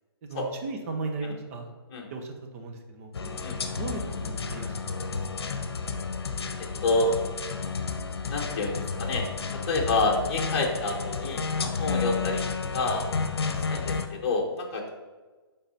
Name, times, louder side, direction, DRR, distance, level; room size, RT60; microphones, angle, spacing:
voice 1, 0.2-1.7 2.1-5.5, right 3 dB, 35° right, 3 dB, 1.0 m, -37 dB
sound 1, 3.1-14.1, left 5 dB, 70° left, 0.9 m, -31 dB
voice 2, 6.6-7.1 8.3-9.2 9.6-13.1 13.4-14.9, left 2 dB, 35° left, -2 dB, 1.2 m, -28 dB
9.1 x 4.0 x 4.3 m, 1.3 s
hypercardioid pair, 155°, 13 cm